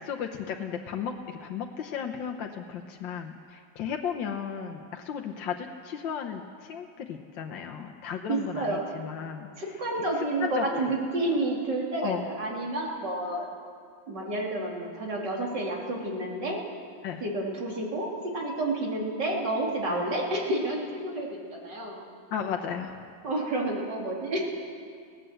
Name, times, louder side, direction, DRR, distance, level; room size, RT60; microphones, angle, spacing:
voice 1, 0.0-9.5 10.4-10.9 12.0-12.2 17.0-17.2 19.9-20.0 22.3-23.0, left 7 dB, 70° left, 2 dB, 1.7 m, -34 dB
voice 2, 8.3-8.9 9.6-13.5 14.1-16.6 17.2-22.0 23.2-24.5, right 2 dB, 60° right, -2 dB, 3.9 m, -30 dB
19.5 x 17.5 x 7.9 m, 2.2 s
omnidirectional pair, 2.1 m